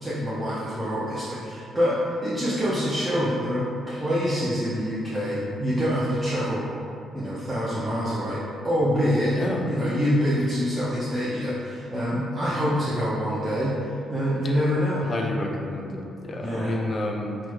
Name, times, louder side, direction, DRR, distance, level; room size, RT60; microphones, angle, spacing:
voice 1, 0.0-6.7 7.1-8.4 8.6-9.4 9.6-13.7 14.1-15.1 16.4-16.8, equal, 15° right, -10 dB, 0.6 m, -25 dB
voice 2, 9.3-9.7 10.2-10.3 15.0-17.4, left 2 dB, 40° left, 1 dB, 0.4 m, -30 dB
3.3 x 2.1 x 3.1 m, 2.5 s
cardioid pair, 90°, 0 cm